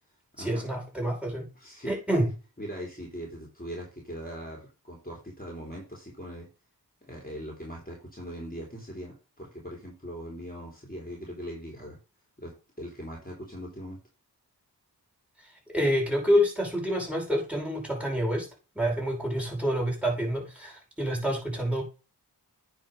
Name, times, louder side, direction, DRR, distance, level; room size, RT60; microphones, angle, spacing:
voice 1, 0.4-1.5 1.9-2.3 15.7-18.5 18.8-21.8, equal, 5° right, -1 dB, 5.1 m, -27 dB
voice 2, 1.6-1.9 2.6-6.5 7.0-12.0 12.4-14.0, equal, 20° left, -2 dB, 3.4 m, -40 dB
9.5 x 4.2 x 5.4 m, 0.32 s
cardioid pair, 45°, 40 cm